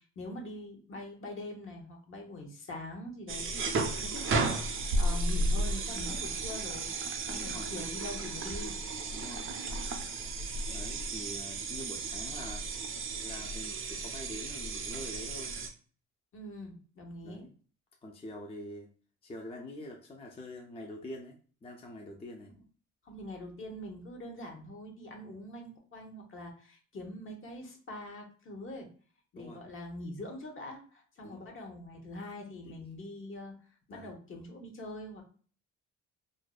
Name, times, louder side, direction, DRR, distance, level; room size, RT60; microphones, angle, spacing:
voice 1, 0.0-6.9 7.2-8.8 16.3-17.4 23.0-28.9 29.3-33.5 33.9-35.2, left 1 dB, 45° left, 1 dB, 0.8 m, -44 dB
sound 1, 3.3-15.7, right 2 dB, 45° right, 0.5 m, -34 dB
voice 2, 7.3-7.7 9.1-9.5 10.7-12.6 13.2-15.6 17.2-17.5 18.0-18.9 19.2-22.5 29.4-29.6 31.2-31.4 32.6-32.9 33.9-34.1, left 1 dB, 20° left, 0 dB, 0.4 m, -45 dB
2.5 x 2.1 x 2.3 m, 0.41 s
cardioid pair, 90°, 30 cm